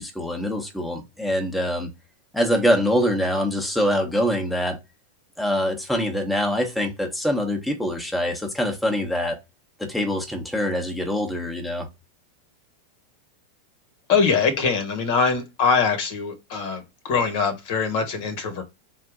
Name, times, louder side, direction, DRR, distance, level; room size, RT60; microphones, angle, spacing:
voice 1, 0.0-1.9 2.3-4.8 5.4-9.4 9.8-11.9, equal, 5° left, 0.9 m, -24 dB
voice 2, 14.1-18.6, left 5 dB, 60° left, 1.2 m, -23 dB
3.7 x 2.5 x 3.6 m
hypercardioid pair, 95°, 0 cm